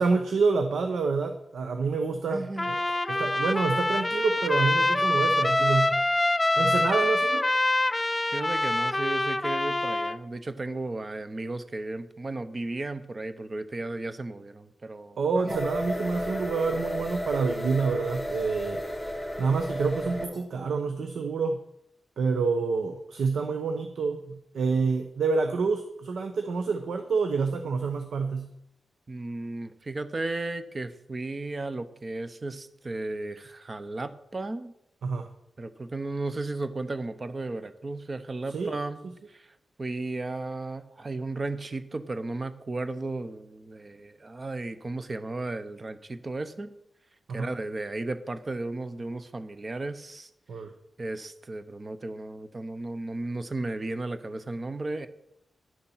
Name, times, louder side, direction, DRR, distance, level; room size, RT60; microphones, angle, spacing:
voice 1, 0.0-2.8 3.1-6.0 6.6-7.5 15.2-18.8 19.4-21.6 22.2-28.5 35.0-35.3 38.5-38.7 47.3-47.5 50.5-50.7, right 4 dB, 85° right, 6 dB, 0.8 m, -27 dB
voice 2, 2.3-2.8 8.3-15.6 29.1-34.7 35.6-39.0 39.3-39.5 39.8-46.7 47.3-50.3 51.0-55.1, right 2 dB, 30° right, 11 dB, 0.7 m, -34 dB
Trumpet, 2.6-10.2, left 2 dB, 15° left, 0.4 m, -25 dB
sound 1, 15.5-20.4, equal, 5° right, 2.0 m, -33 dB
10.5 x 6.9 x 5.6 m, 0.80 s
wide cardioid pair, 145°, 0 cm